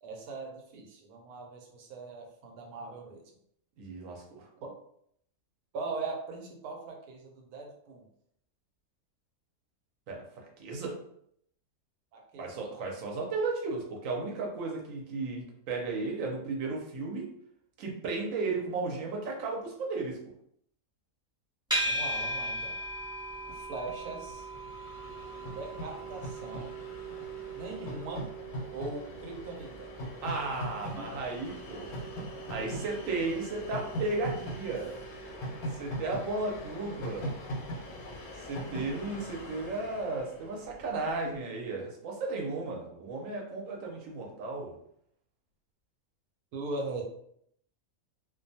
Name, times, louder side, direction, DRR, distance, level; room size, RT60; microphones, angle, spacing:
voice 1, 0.0-3.2 4.6-4.7 5.7-8.0 12.1-12.7 21.8-22.8 23.5-24.5 25.5-26.8 27.5-28.3 28.7-29.9 31.0-31.1 46.5-47.0, right 3 dB, 90° right, 2 dB, 1.1 m, -40 dB
voice 2, 3.8-4.5 10.1-11.0 12.4-17.3 17.8-20.2 30.2-32.0 32.5-35.0 35.8-37.4 38.4-44.8, right 3 dB, 70° right, 0 dB, 1.0 m, -34 dB
sound 1, 21.7-38.9, right 1 dB, 5° right, 0.5 m, -40 dB
Train, 22.5-22.6 22.7-41.2, equal, 80° left, 1.1 m, -41 dB
2.6 x 2.2 x 2.6 m, 0.70 s
omnidirectional pair, 1.5 m